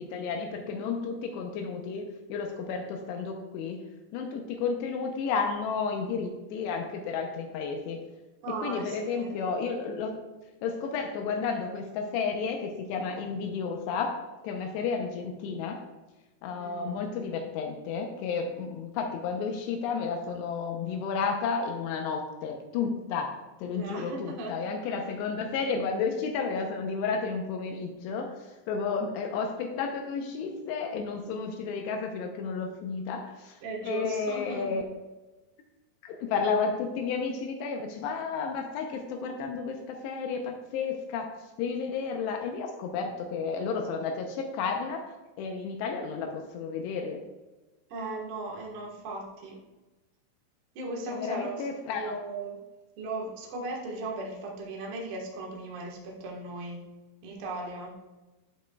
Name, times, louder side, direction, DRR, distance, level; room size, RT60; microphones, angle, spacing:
voice 1, 0.0-2.0 2.3-3.8 4.1-8.0 8.6-10.1 10.6-14.2 14.4-15.8 16.4-34.8 36.0-41.3 41.6-45.0 45.4-47.2 51.1-52.2, left 5 dB, 85° left, 3 dB, 2.8 m, -32 dB
voice 2, 8.4-9.4 16.6-17.0 23.7-24.6 33.6-34.7 47.9-49.6 50.7-52.6 53.0-56.9 57.2-57.9, right 2 dB, 80° right, -2 dB, 1.2 m, -37 dB
9.7 x 8.2 x 2.3 m, 1.1 s
omnidirectional pair, 4.9 m